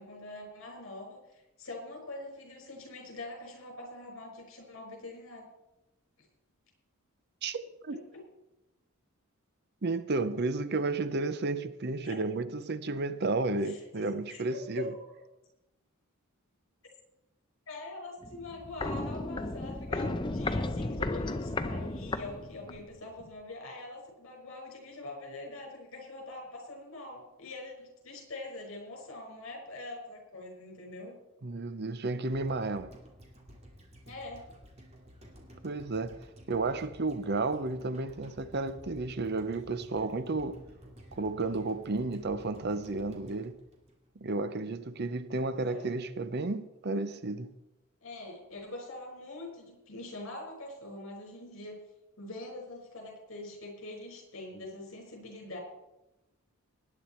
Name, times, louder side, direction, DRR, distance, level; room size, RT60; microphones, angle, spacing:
voice 1, 0.0-5.5 8.1-8.2 12.0-12.2 13.6-15.1 17.7-31.2 34.0-34.4 45.6-45.9 48.0-51.8 52.2-55.6, left 2 dB, 70° left, 5.4 m, -44 dB
voice 2, 7.4-8.0 9.8-14.9 31.4-32.9 35.6-36.2 36.5-40.6 41.2-43.6 44.2-47.5, right 3 dB, 50° right, 0.7 m, -32 dB
Walk footsteps, 18.2-22.9 23.2-23.3, left 2 dB, 20° left, 0.6 m, -34 dB
sound 1, 32.3-44.5 44.8-44.9, equal, 30° right, 2.7 m, -53 dB
19.0 x 9.9 x 4.4 m
head